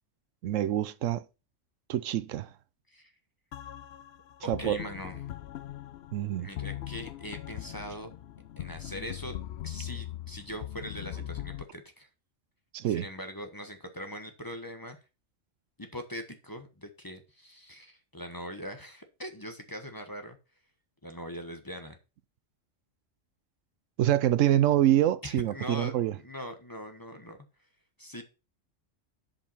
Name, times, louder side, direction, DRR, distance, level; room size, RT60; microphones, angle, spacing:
voice 1, 0.4-1.2 1.9-2.5 4.5-4.8 6.1-6.5 12.7-13.0 24.0-26.1, right 12 dB, 80° right, 1.0 m, -26 dB
sound 1, 3.5-11.6, left 12 dB, 65° left, 0.8 m, -40 dB
voice 2, 4.4-5.2 6.4-8.1 8.6-9.3 9.6-12.1 12.8-15.0 15.8-20.4 21.0-22.0 25.2-27.4 28.0-28.2, equal, 15° left, 1.1 m, -41 dB
7.5 x 5.4 x 5.6 m
omnidirectional pair, 1.3 m